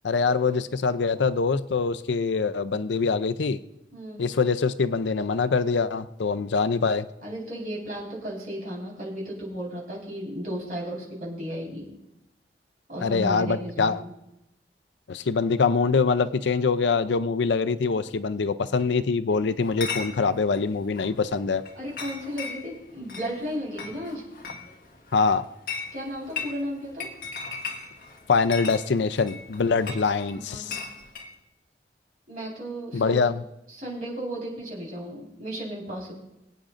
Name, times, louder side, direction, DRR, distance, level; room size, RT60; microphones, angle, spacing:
voice 1, 0.0-3.6 4.2-7.1 13.0-14.0 15.1-21.6 25.1-25.5 28.3-30.8 32.9-33.4, left 4 dB, 90° left, 13 dB, 0.5 m, -24 dB
voice 2, 3.9-4.3 7.2-11.9 12.9-14.1 21.7-24.2 25.9-27.1 30.3-30.9 32.3-33.2 33.7-36.1, equal, 50° right, -4 dB, 4.5 m, -34 dB
Chatter / Chink clink, 19.6-31.3, left 5 dB, 50° left, 1.5 m, -38 dB
24.0 x 8.6 x 2.5 m, 0.89 s
head